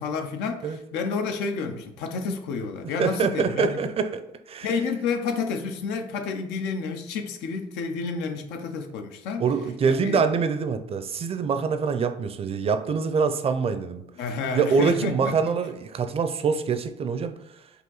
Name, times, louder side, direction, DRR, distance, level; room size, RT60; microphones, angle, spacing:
voice 1, 0.0-3.8 4.6-9.5 9.8-10.3 14.2-15.5, left 5 dB, 90° left, 0.5 m, -30 dB
voice 2, 3.0-4.7 9.4-14.0 14.5-17.4, right 5 dB, 35° right, 0.5 m, -25 dB
4.9 x 2.6 x 3.9 m
cardioid pair, 110°, 17 cm